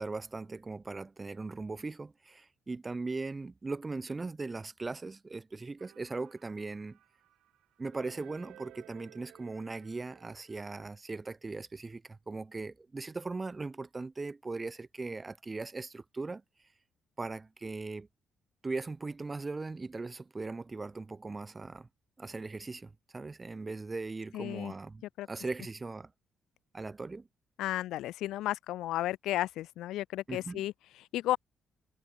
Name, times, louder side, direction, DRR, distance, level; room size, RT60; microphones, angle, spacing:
voice 1, 0.0-7.0 7.8-16.4 17.2-18.1 18.6-21.9 22.2-26.1 26.7-27.3 30.3-30.7, right 3 dB, 25° right, 5.6 m, -39 dB
sound 1, 5.8-10.9, right 13 dB, 85° right, 7.0 m, -57 dB
voice 2, 24.3-24.7 25.2-25.3 27.6-31.4, left 14 dB, 90° left, 1.5 m, -33 dB
cardioid pair, 90°, 0 cm